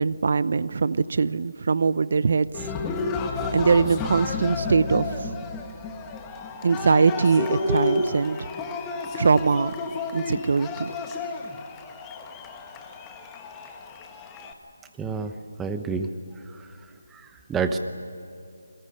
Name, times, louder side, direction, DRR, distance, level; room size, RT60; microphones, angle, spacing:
voice 1, 0.0-2.5 3.5-5.4 6.6-8.5 9.2-9.7 10.1-10.9, right 5 dB, 50° right, 17 dB, 0.7 m, -22 dB
Cheering, 2.5-14.5, left 3 dB, 10° left, 1.4 m, -31 dB
voice 2, 15.0-15.3 15.6-16.1 17.1-17.2 17.5-17.8, right 5 dB, 5° right, 7 dB, 0.9 m, -27 dB
29.5 x 22.5 x 6.7 m, 2.6 s
figure-of-eight pair, 170°, 0 cm